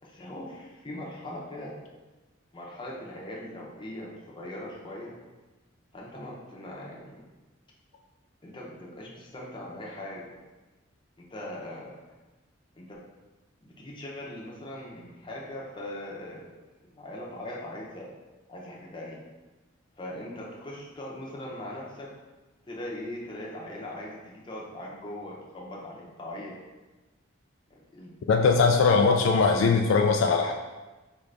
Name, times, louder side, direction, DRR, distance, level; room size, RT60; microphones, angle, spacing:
voice 1, 0.0-1.7 2.5-5.2 5.9-7.3 8.4-10.4 11.2-12.0 12.7-13.0 13.6-16.5 16.8-18.1 18.5-19.2 20.0-22.1 22.7-26.6 27.7-29.3 30.4-30.5, left 1 dB, 25° left, -4 dB, 0.7 m, -40 dB
voice 2, 28.3-30.5, left 4 dB, 65° left, 3 dB, 0.3 m, -21 dB
4.8 x 2.5 x 3.3 m, 1.2 s
head